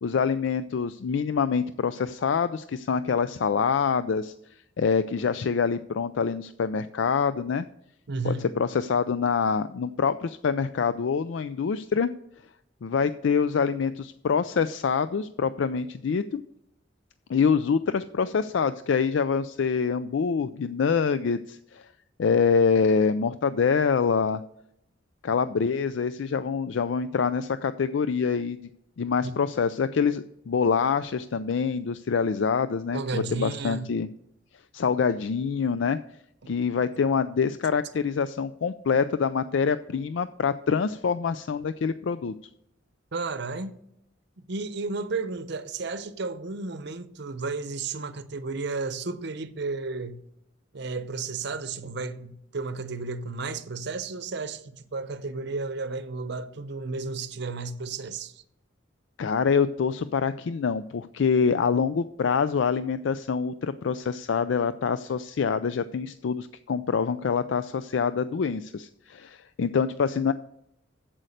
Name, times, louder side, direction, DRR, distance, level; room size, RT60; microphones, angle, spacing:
voice 1, 0.0-4.3 4.8-7.6 8.2-12.1 12.8-16.4 17.3-21.9 22.2-24.4 25.2-28.6 29.0-34.1 34.7-36.0 36.5-42.3 59.2-70.3, left 6 dB, 70° left, 0.4 m, -25 dB
voice 2, 8.1-8.5 29.3-29.5 32.9-33.9 36.4-36.5 43.1-43.8 44.5-50.2 50.7-58.4, right 3 dB, 60° right, 0.7 m, -33 dB
8.3 x 7.7 x 6.5 m
head